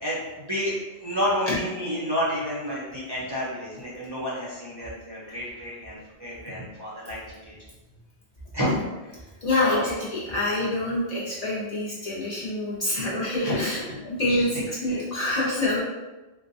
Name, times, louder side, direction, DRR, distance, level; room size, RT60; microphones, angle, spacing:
voice 1, 0.0-0.8 1.0-7.6 8.5-9.3 9.6-9.9 12.9-13.1 13.4-14.0 14.9-15.0, equal, 30° right, -8 dB, 0.5 m, -30 dB
voice 2, 9.4-13.8 14.0-15.8, left 1 dB, 45° left, -7 dB, 0.6 m, -26 dB
3.8 x 2.2 x 2.6 m, 1.1 s
omnidirectional pair, 1.1 m